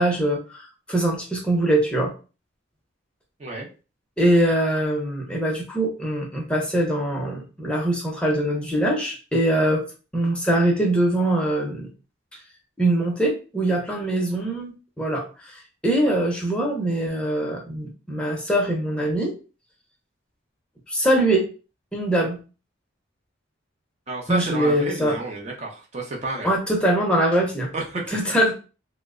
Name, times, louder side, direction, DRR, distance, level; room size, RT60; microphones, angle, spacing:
voice 1, 0.0-2.1 4.2-9.9 10.1-11.9 12.8-19.3 20.9-21.5 21.9-22.4 24.3-25.2 26.4-27.7 28.1-28.5, right 1 dB, 5° left, -1 dB, 0.6 m, -22 dB
voice 2, 24.1-26.5 27.7-28.2, right 2 dB, 35° right, 0 dB, 0.6 m, -30 dB
2.9 x 2.1 x 3.6 m, 0.33 s
head